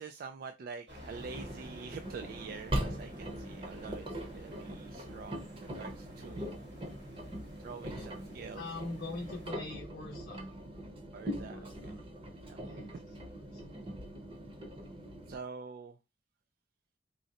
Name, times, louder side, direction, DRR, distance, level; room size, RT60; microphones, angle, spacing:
voice 1, 0.0-6.6 7.6-8.6 11.1-12.0 12.5-13.1 15.3-16.0, right 5 dB, 50° right, 8 dB, 0.3 m, -46 dB
sound 1, 0.9-9.5, equal, 85° right, 1.8 m, -52 dB
Engine, 1.2-15.4, equal, 30° right, 0.8 m, -41 dB
voice 2, 8.5-10.5 11.5-12.0 12.6-12.9 13.3-13.6, left 2 dB, 55° left, -1 dB, 0.6 m, -43 dB
3.7 x 2.1 x 4.0 m, 0.25 s
head